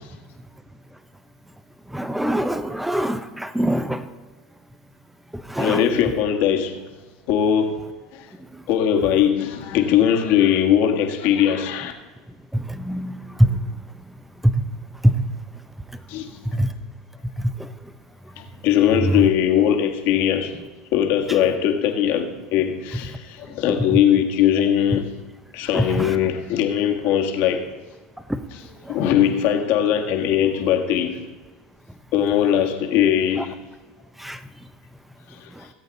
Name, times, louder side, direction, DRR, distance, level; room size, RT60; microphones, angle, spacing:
voice 1, 1.9-4.0 5.5-5.8 12.5-13.5 14.4-14.5 15.0-15.1 16.5-16.7 19.0-19.2 25.7-26.2 28.3-28.4 28.9-29.0 33.4-33.5 34.2-34.4, equal, 5° right, 0.9 m, -22 dB
voice 2, 5.6-6.8 7.3-8.3 8.7-11.9 16.1-16.3 18.4-20.5 20.9-25.1 25.5-27.7 28.5-31.2 32.1-33.5 35.3-35.5, left 9 dB, 60° left, 1.8 m, -20 dB
17.5 x 8.2 x 4.1 m
hypercardioid pair, 90°, 4 cm